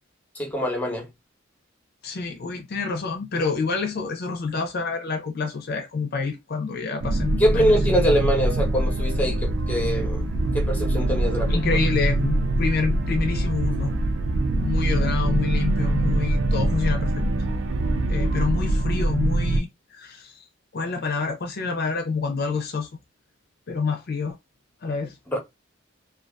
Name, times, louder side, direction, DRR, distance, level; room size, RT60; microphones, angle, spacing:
voice 1, 0.3-1.1 7.4-10.3 10.5-11.6 25.3-25.4, equal, 10° left, 0.9 m, -23 dB
voice 2, 2.0-7.7 11.5-13.9 14.5-17.2 18.1-20.5 20.7-22.9 23.7-24.4 24.8-25.2, left 4 dB, 55° left, 0.5 m, -27 dB
sound 1, 7.0-19.6, right 2 dB, 70° right, 0.4 m, -23 dB
2.5 x 2.3 x 2.2 m
head